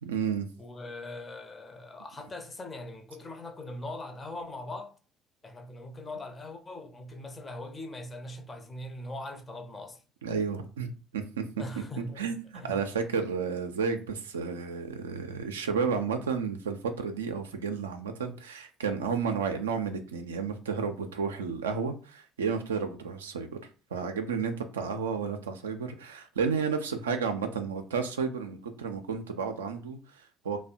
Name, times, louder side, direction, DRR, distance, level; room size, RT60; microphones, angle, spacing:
voice 1, 0.0-0.5 10.2-11.6 12.2-23.6 23.9-30.6, right 5 dB, 80° right, 0.3 m, -32 dB
voice 2, 0.6-4.9 5.4-10.0 11.6-12.2 12.5-12.8, left 1 dB, 25° left, 0.6 m, -41 dB
2.6 x 2.0 x 2.5 m
figure-of-eight pair, 55°, 0 cm